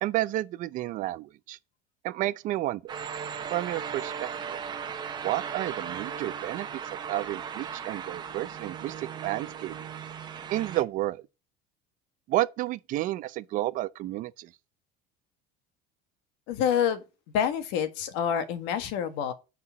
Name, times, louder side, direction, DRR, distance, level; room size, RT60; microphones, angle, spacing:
voice 1, 0.0-1.6 2.0-2.9 3.5-4.6 5.2-6.8 7.1-9.7 10.5-11.2 12.3-14.5, right 15 dB, 45° right, 0.5 m, -31 dB
sound 1, 2.9-10.8, right 7 dB, 20° right, 1.0 m, -37 dB
voice 2, 16.5-17.0 17.3-19.3, left 8 dB, 70° left, 1.8 m, -27 dB
9.8 x 4.5 x 5.7 m
cardioid pair, 170°, 19 cm